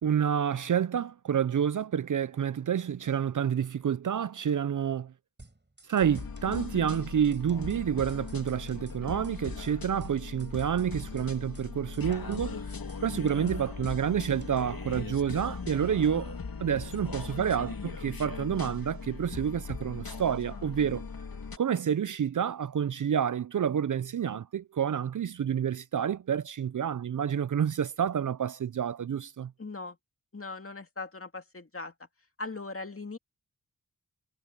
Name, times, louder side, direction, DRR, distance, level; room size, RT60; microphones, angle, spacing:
voice 1, 0.0-5.1 5.9-12.6 13.0-21.1 21.6-29.5, right 8 dB, 55° right, 0.5 m, -29 dB
sound 1, 5.4-6.7 6.9-7.1 7.3-9.0 9.2-9.4 9.6-11.3 11.5-11.7 11.9-14.0 14.2-14.6, right 2 dB, 30° right, 7.6 m, -56 dB
sound 2, 6.0-21.6, left 5 dB, 70° left, 2.6 m, -39 dB
voice 2, 29.6-30.0 30.3-31.9 32.4-33.2, left 3 dB, 35° left, 2.4 m, -39 dB
wide cardioid pair, 55°, 36 cm